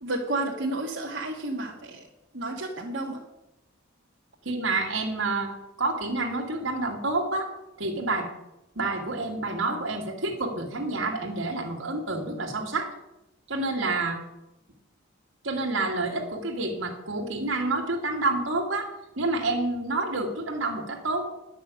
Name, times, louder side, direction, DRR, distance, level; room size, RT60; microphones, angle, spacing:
voice 1, 0.0-2.0 2.3-3.2, right 2 dB, 60° right, -3 dB, 1.7 m, -31 dB
voice 2, 4.5-7.5 7.8-8.3 8.8-12.9 13.5-14.2 15.4-18.9 19.2-21.3, right 2 dB, 75° right, 2 dB, 2.2 m, -28 dB
10.5 x 6.2 x 8.5 m, 0.93 s
head